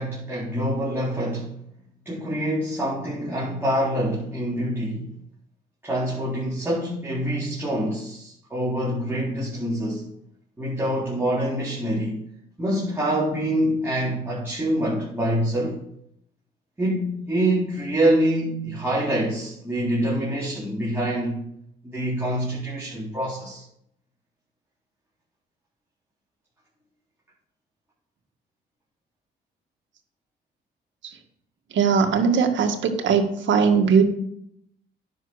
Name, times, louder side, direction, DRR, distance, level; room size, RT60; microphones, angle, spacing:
voice 1, 0.0-1.5 2.1-5.1 5.8-10.1 10.6-12.2 12.6-15.8 16.8-21.4 21.8-23.6, right 1 dB, 10° right, -7 dB, 4.0 m, -25 dB
voice 2, 31.7-34.0, right 6 dB, 70° right, 4 dB, 1.8 m, -20 dB
10.0 x 6.9 x 6.4 m, 0.75 s
cardioid pair, 90°, 20 cm